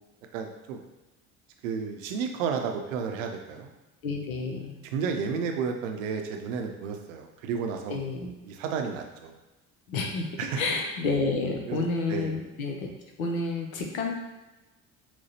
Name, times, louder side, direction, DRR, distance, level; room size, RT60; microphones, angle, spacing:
voice 1, 0.3-0.8 1.6-3.7 4.9-8.0 8.5-9.3 10.4-10.6 11.7-11.8 12.1-12.3, right 6 dB, 65° right, 4 dB, 0.6 m, -32 dB
voice 2, 4.0-4.8 7.9-8.3 9.9-12.9 13.2-14.3, left 3 dB, 70° left, 2 dB, 0.7 m, -30 dB
5.8 x 2.2 x 2.8 m, 1.1 s
figure-of-eight pair, 55°, 43 cm